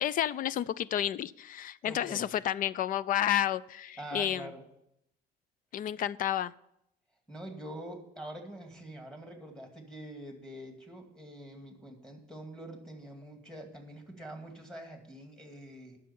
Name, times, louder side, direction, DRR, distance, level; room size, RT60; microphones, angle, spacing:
voice 1, 0.0-4.5 5.7-6.5, left 11 dB, 55° left, 20 dB, 0.4 m, -31 dB
voice 2, 1.8-2.3 4.0-4.6 7.3-16.0, right 1 dB, 5° left, 3 dB, 2.3 m, -45 dB
9.9 x 6.6 x 7.0 m, 0.80 s
cardioid pair, 115°, 17 cm